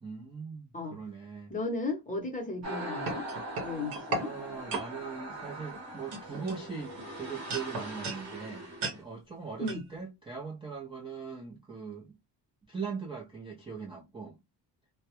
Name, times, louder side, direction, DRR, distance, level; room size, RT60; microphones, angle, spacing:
voice 1, 0.0-1.5 4.2-8.7 9.0-12.2 12.7-14.4, right 5 dB, 15° right, 0.4 m, -40 dB
voice 2, 1.5-3.3 3.6-4.3 9.6-9.8, left 2 dB, 20° left, 0.7 m, -35 dB
sound 1, 2.6-9.0, right 1 dB, 40° right, 0.9 m, -41 dB
sound 2, 2.6-4.3 4.7-4.9 5.6-5.8 6.1-7.1 7.5-8.2 8.8-9.0 9.7-9.8, right 2 dB, 70° right, 0.8 m, -36 dB
2.2 x 2.0 x 2.8 m
wide cardioid pair, 170°, 42 cm